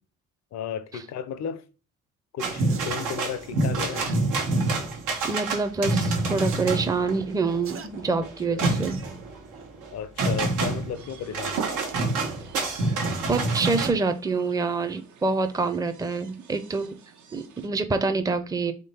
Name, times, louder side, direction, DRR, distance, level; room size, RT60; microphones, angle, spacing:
voice 1, 0.5-1.6 2.3-4.1 8.5-8.8 9.9-11.6, left 7 dB, 60° left, 0.6 m, -34 dB
sound 1, 2.4-13.9, right 2 dB, 90° right, 1.2 m, -27 dB
sound 2, 2.7-2.9 4.0-4.2 5.2-5.5 6.4-6.6 7.6-7.9 8.8-9.1 9.6-9.7, right 6 dB, 45° right, 0.8 m, -41 dB
voice 2, 5.2-9.0 13.3-17.0 17.3-18.7, right 4 dB, 10° right, 0.5 m, -26 dB
sound 3, 10.9-17.7, right 6 dB, 75° right, 0.9 m, -42 dB
3.7 x 3.2 x 4.2 m
cardioid pair, 90°, 30 cm